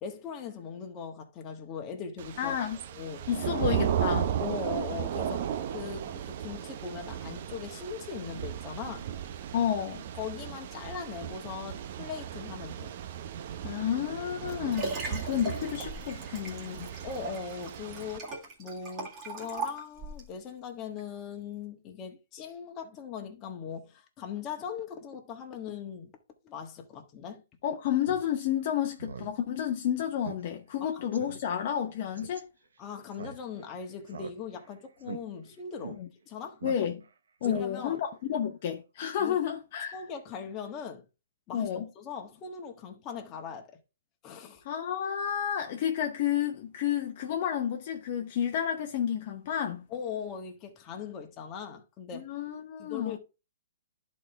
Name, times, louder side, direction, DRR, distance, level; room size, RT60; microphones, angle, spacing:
voice 1, 0.0-2.6 2.9-3.3 4.4-9.1 10.1-12.9 17.0-26.1 26.4-27.4 30.8-31.0 32.8-36.6 37.4-38.0 39.2-39.4 39.9-41.1 41.5-41.7 41.9-43.7 44.2-44.6 49.9-52.3 52.8-53.2, left 6 dB, 25° left, 1.4 m, -40 dB
Thunder / Rain, 2.2-18.2, right 9 dB, 50° right, 0.7 m, -35 dB
voice 2, 2.4-2.8 3.3-4.3 9.5-10.0 13.6-16.9 27.6-32.5 36.0-36.1 36.6-37.0 37.4-40.0 41.5-41.9 44.6-49.8 52.1-53.2, left 9 dB, 45° left, 0.9 m, -31 dB
Liquid, 14.1-20.3 21.0-21.1, right 3 dB, 25° right, 2.0 m, -39 dB
Speech synthesizer, 28.0-28.2 28.6-28.7 29.0-29.3 29.6-29.7 30.2-30.4 30.7-30.8 31.1-31.4 32.2-32.4 33.1-33.7 34.1-34.7 35.0-35.2 35.8-36.0 36.6-37.1 37.4-37.9, right 5 dB, 85° right, 0.9 m, -42 dB
11.0 x 4.3 x 3.4 m
hypercardioid pair, 145°, 0 cm